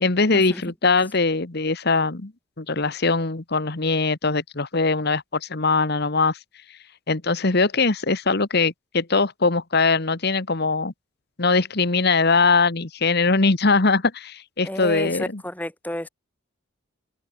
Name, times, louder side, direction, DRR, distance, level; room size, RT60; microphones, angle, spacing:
voice 1, 0.0-2.3 2.6-6.4 7.1-10.9 11.4-15.4, left 4 dB, 50° left, 1.3 m, -21 dB
voice 2, 14.6-16.1, left 1 dB, 10° left, 4.9 m, -31 dB
head